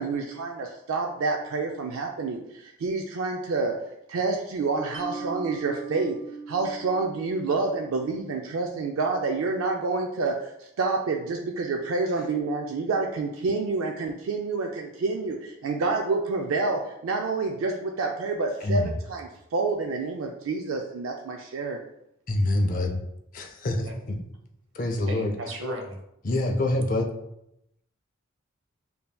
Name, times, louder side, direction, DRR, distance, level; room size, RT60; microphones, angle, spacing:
voice 1, 0.0-3.7 4.1-6.2 6.5-21.8, right 3 dB, 80° right, 2 dB, 0.4 m, -28 dB
Mallet percussion, 4.9-8.2, right 4 dB, 30° right, 0.9 m, -40 dB
voice 2, 18.6-18.9 22.3-23.0 23.3-24.2 24.8-25.3 26.2-27.1, left 1 dB, 40° left, 4 dB, 0.5 m, -25 dB
voice 3, 25.1-26.0, equal, 65° right, 3 dB, 0.7 m, -35 dB
5.4 x 2.7 x 2.2 m, 0.82 s
head